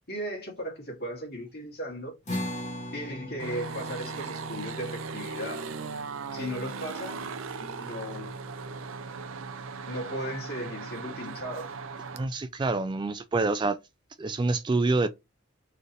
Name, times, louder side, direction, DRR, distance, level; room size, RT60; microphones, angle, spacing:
voice 1, 0.1-2.1 2.9-5.6 6.3-7.3 7.6-8.7 9.9-11.7, equal, 50° left, 2.1 m, -37 dB
sound 1, 2.3-8.9, left 1 dB, 35° left, 1.5 m, -41 dB
sound 2, 3.4-12.3, right 4 dB, 80° right, 0.6 m, -38 dB
voice 2, 12.1-13.8 14.2-15.1, right 3 dB, 20° right, 0.3 m, -26 dB
4.4 x 3.3 x 3.0 m
head